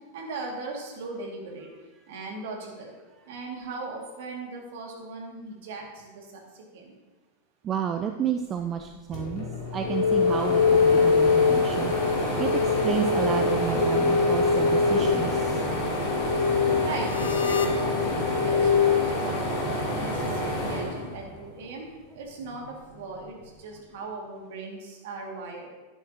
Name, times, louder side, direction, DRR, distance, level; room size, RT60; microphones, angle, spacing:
voice 1, 0.1-1.7 2.1-2.9 3.3-6.9 16.8-21.9 22.1-22.7 22.9-25.7, right 3 dB, 55° right, 0 dB, 2.2 m, -38 dB
voice 2, 7.6-9.5 9.7-11.9 12.4-15.6, right 8 dB, 25° right, 6 dB, 0.5 m, -31 dB
sound 1, 8.8-8.9 9.1-21.7 22.2-23.3, equal, 45° left, 2.2 m, -29 dB
sound 2, 9.8-19.0, left 5 dB, 70° left, 0.9 m, -24 dB
11.0 x 10.5 x 2.9 m, 1.2 s
figure-of-eight pair, 90°, 0 cm